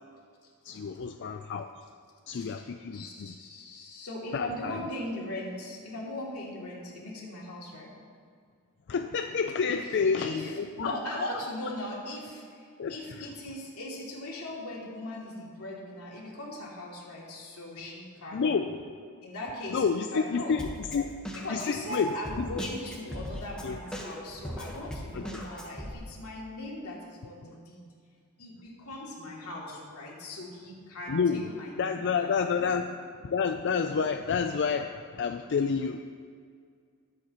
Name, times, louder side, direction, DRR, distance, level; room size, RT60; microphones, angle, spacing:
voice 1, 0.6-1.7 2.3-3.3 4.3-4.8 8.9-10.9 12.8-13.3 18.3-19.0 19.7-21.1 21.5-22.5 23.6-23.8 25.1-25.4 31.1-31.5 31.8-32.9 33.2-36.0, left 5 dB, 55° left, 6 dB, 0.4 m, -29 dB
voice 2, 2.3-2.7 2.9-7.9 9.6-9.9 10.2-18.5 19.2-20.6 21.3-27.8 28.4-32.7, left 1 dB, 85° left, -4 dB, 2.7 m, -39 dB
Drum kit, 20.6-25.9, equal, 5° left, 1.3 m, -39 dB
21.0 x 7.7 x 3.0 m, 2.1 s
head